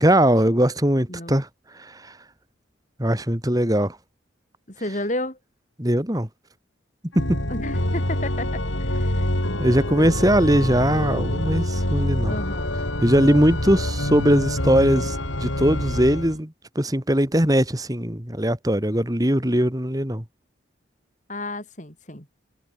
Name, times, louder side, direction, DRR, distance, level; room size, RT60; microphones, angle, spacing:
voice 1, 0.0-1.5 1.7-2.1 3.0-4.0 5.8-6.3 7.2-7.4 9.6-12.4 13.0-16.5 16.8-20.2, equal, 20° right, 2.6 m, -20 dB
voice 2, 4.7-5.4 7.5-9.3 12.2-12.8 21.3-22.3, left 1 dB, 40° left, 7.3 m, -32 dB
Organ, 7.1-16.4, left 1 dB, 90° left, 6.1 m, -26 dB
head